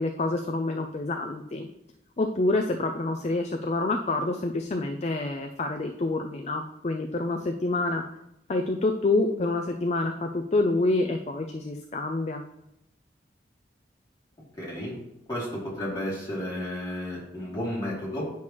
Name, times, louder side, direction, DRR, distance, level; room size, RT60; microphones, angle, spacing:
voice 1, 0.0-1.7 2.2-8.0 8.5-12.4, left 2 dB, 35° left, 5 dB, 0.4 m, -27 dB
voice 2, 14.6-15.0 15.3-18.3, equal, 20° left, -7 dB, 2.9 m, -32 dB
9.3 x 5.8 x 3.1 m, 0.82 s
head